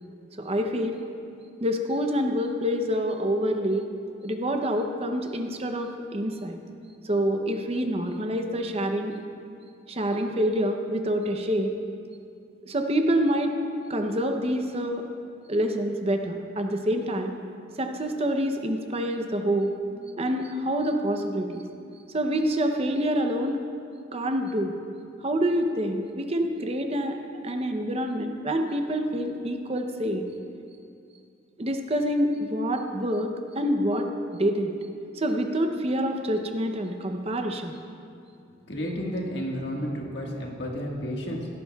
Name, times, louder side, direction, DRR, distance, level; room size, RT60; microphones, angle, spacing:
voice 1, 0.4-1.0 1.6-3.9 4.2-6.6 7.0-9.1 9.9-11.7 12.7-13.6 13.9-15.0 15.5-17.3 17.8-19.7 20.2-21.6 22.1-23.6 24.1-24.7 25.2-27.2 27.4-30.2 31.6-34.1 34.3-34.7 35.2-37.7, equal, 30° right, 4 dB, 0.7 m, -26 dB
voice 2, 38.7-41.5, equal, 60° left, -1 dB, 1.7 m, -31 dB
17.0 x 13.0 x 2.4 m, 2.5 s
head